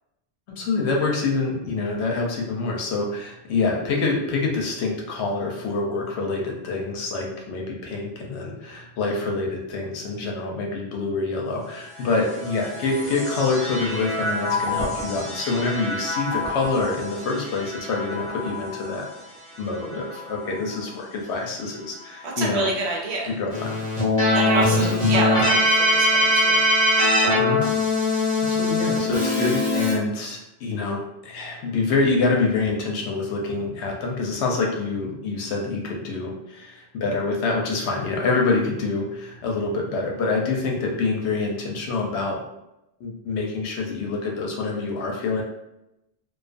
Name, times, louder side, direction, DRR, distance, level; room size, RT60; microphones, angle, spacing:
voice 1, 0.6-19.1 19.6-22.7 23.4-23.8 24.7-25.1 27.3-27.6 28.0-42.4 43.0-45.4, left 3 dB, 80° left, 0 dB, 0.9 m, -26 dB
sound 1, 11.6-23.1 23.8-24.6, left 2 dB, 30° right, 0.7 m, -33 dB
voice 2, 22.2-23.4 24.3-26.6, right 2 dB, 75° right, -1 dB, 0.9 m, -28 dB
Keyboard (musical), 23.5-29.9, left 1 dB, 40° left, 0.9 m, -20 dB
2.3 x 2.3 x 2.4 m, 0.88 s
omnidirectional pair, 1.1 m